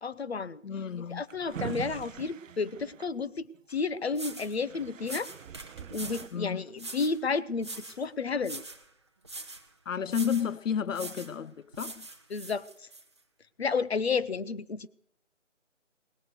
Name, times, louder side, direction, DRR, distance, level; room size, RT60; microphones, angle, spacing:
voice 1, 0.0-0.6 1.1-5.3 5.9-8.6 12.3-12.6 13.6-14.9, left 4 dB, 55° left, 0.9 m, -31 dB
voice 2, 0.6-1.2 6.3-6.9 9.9-12.1, left 7 dB, 90° left, 0.6 m, -32 dB
Drawer open or close, 1.0-3.8 4.3-4.4 4.6-6.3, right 8 dB, 85° right, 0.5 m, -42 dB
sound 1, 3.7-3.8 4.1-4.6 5.0-6.3 6.8-7.2 7.6-8.0 8.4-8.9 9.2-9.7 10.1-10.5 10.9-11.4 11.7-13.0, right 2 dB, 20° right, 0.7 m, -42 dB
19.5 x 9.5 x 6.5 m
figure-of-eight pair, 160°, 37 cm